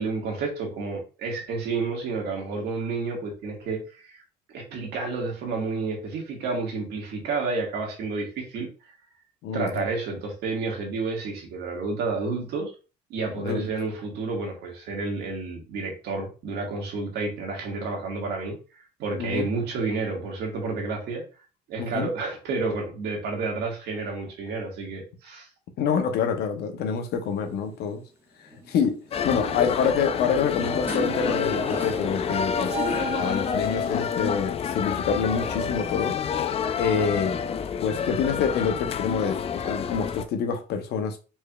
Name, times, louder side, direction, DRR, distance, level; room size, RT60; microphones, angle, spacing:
voice 1, 0.0-4.2 4.5-8.7 9.5-12.7 13.1-21.2 21.7-25.5 29.4-29.7 33.1-33.3, right 3 dB, 75° right, 1.6 m, -30 dB
voice 2, 9.4-9.8 13.4-13.7 19.2-19.5 21.8-22.1 25.8-28.0 28.4-32.8 33.2-36.2 36.8-37.4 37.8-41.2, left 6 dB, 75° left, 0.8 m, -27 dB
sound 1, 27.3-27.5 28.5-28.7 29.1-34.2, right 4 dB, 15° right, 1.2 m, -36 dB
sound 2, 29.1-40.2, left 7 dB, 35° left, 0.4 m, -28 dB
4.4 x 3.3 x 2.3 m
cardioid pair, 110°, 17 cm